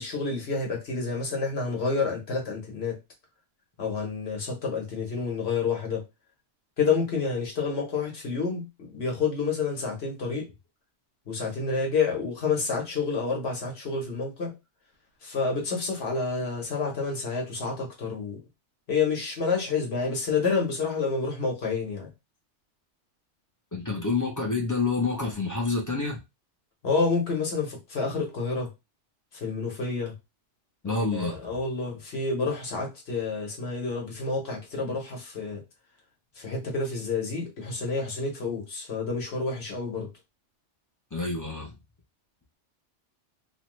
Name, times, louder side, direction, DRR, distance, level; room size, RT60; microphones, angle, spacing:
voice 1, 0.0-2.9 3.8-6.0 6.8-10.5 11.3-14.5 15.2-18.4 18.9-22.1 26.8-28.7 29.3-30.1 30.8-35.6 36.4-40.1, left 4 dB, 60° left, 1.2 m, -29 dB
voice 2, 23.7-26.2 30.8-31.5 41.1-41.7, left 3 dB, 30° left, 0.3 m, -28 dB
3.0 x 2.2 x 3.0 m
omnidirectional pair, 1.2 m